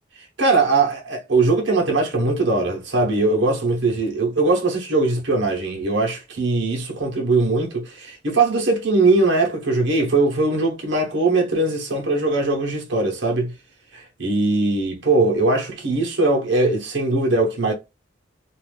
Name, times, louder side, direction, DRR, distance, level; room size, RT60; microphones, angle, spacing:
voice 1, 0.4-13.5 14.2-17.7, right 3 dB, 75° right, 1.0 m, -20 dB
2.5 x 2.5 x 3.3 m
head